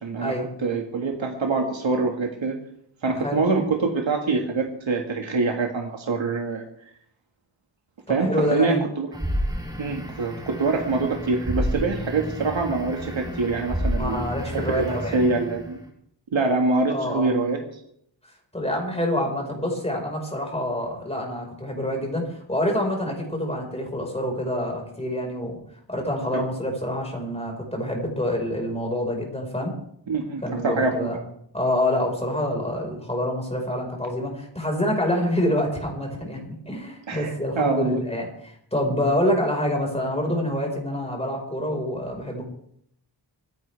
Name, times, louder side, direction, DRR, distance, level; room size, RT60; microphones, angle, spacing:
voice 1, 0.0-0.3 0.6-2.6 3.0-6.7 8.1-9.1 9.8-15.8 16.3-17.6 26.3-26.4 30.1-31.1 37.1-38.0, right 3 dB, 80° right, 2 dB, 2.0 m, -25 dB
voice 2, 8.1-8.8 14.0-15.2 16.9-17.4 18.5-25.6 25.9-29.7 30.4-31.2 31.5-42.5, left 1 dB, 15° left, 0 dB, 5.1 m, -26 dB
sound 1, 9.1-15.8, equal, 10° right, 3.6 m, -30 dB
26.0 x 10.5 x 3.5 m, 0.70 s
wide cardioid pair, 80°, 46 cm